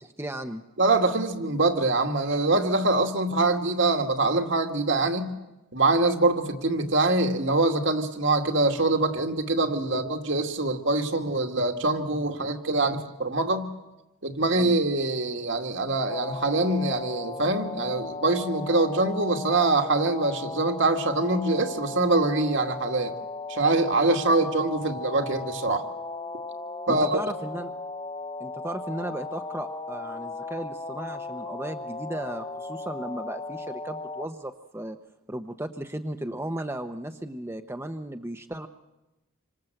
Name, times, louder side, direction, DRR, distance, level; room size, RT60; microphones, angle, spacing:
voice 1, 0.0-0.6 14.6-14.7 26.9-27.7 28.4-35.0 35.3-38.7, right 1 dB, 10° right, 6 dB, 0.9 m, -35 dB
voice 2, 0.8-5.3 5.7-13.7 14.2-23.1 23.5-25.9 26.9-27.2, right 2 dB, 60° right, 5 dB, 2.3 m, -24 dB
sound 1, 16.1-34.3, left 3 dB, 20° left, 0.9 m, -36 dB
27.5 x 25.0 x 7.9 m, 1.0 s
head